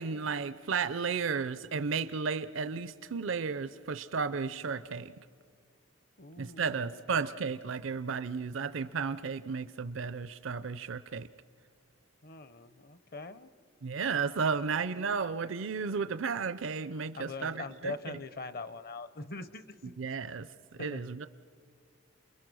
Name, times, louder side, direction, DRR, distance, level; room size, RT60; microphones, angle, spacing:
voice 1, 0.0-5.1 6.4-11.3 13.8-17.9 20.0-20.5 20.8-21.3, right 5 dB, 70° right, 12 dB, 0.5 m, -33 dB
voice 2, 6.2-7.2 12.2-13.5 17.1-20.0 20.8-21.0, left 3 dB, 45° left, 14 dB, 0.8 m, -43 dB
28.5 x 22.0 x 6.3 m, 2.2 s
head